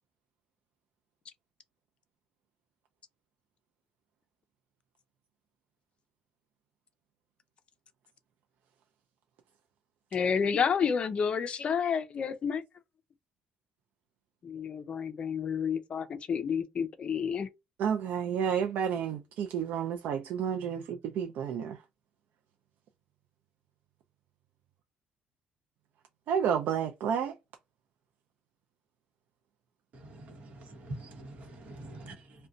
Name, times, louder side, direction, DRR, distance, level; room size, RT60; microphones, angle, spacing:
voice 1, 10.1-12.6 14.4-17.5, left 6 dB, 40° left, 0.4 m, -30 dB
voice 2, 17.8-21.8 26.3-27.3, right 8 dB, 75° right, 0.4 m, -30 dB
voice 3, 29.9-32.5, right 1 dB, 55° right, 1.0 m, -45 dB
2.5 x 2.2 x 3.7 m
cardioid pair, 145°, 3 cm